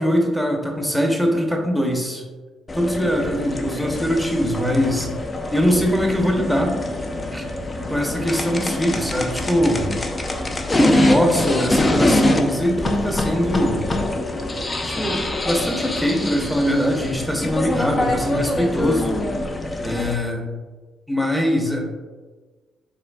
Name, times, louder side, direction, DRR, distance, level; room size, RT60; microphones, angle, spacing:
voice 1, 0.0-2.2 2.7-5.1 5.5-6.8 7.3-7.4 7.9-9.9 10.7-13.9 14.8-19.2 19.8-20.5 21.1-21.8, equal, ahead, 0 dB, 0.8 m, -22 dB
sound 1, 2.7-20.1, left 1 dB, 30° left, 0.5 m, -24 dB
5.0 x 3.3 x 2.3 m, 1.4 s
cardioid pair, 75°, 0 cm